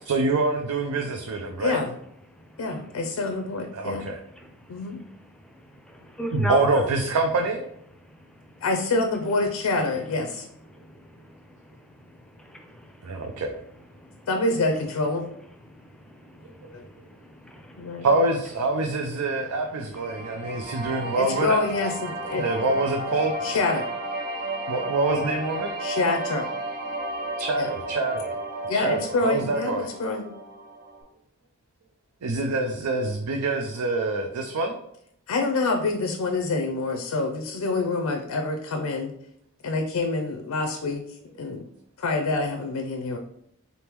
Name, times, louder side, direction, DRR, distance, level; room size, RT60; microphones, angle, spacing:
voice 1, 0.1-1.8 3.7-4.2 6.3-7.6 13.0-13.5 16.4-16.7 18.0-21.6 22.4-23.3 24.7-25.7 27.4-28.4 28.7-29.9 32.2-34.8, right 3 dB, 90° right, 3 dB, 0.5 m, -25 dB
voice 2, 1.6-2.0 2.6-4.0 4.7-5.0 8.6-10.4 14.3-15.3 16.7-16.9 17.7-18.1 21.2-22.5 23.4-23.9 25.8-26.5 27.6-27.7 28.7-30.3 35.3-39.1 39.6-41.0 41.4-41.6 42.0-43.2, left 3 dB, 85° left, 4 dB, 0.5 m, -26 dB
voice 3, 4.4-5.1 5.4-6.8 8.4-8.6 10.8-11.3 12.0-13.4 14.0-14.3 15.7-18.0 20.1-20.9, equal, 5° left, 3 dB, 0.5 m, -39 dB
sound 1, 20.0-31.0, right 1 dB, 50° right, 1.0 m, -33 dB
4.0 x 3.5 x 3.0 m, 0.74 s
head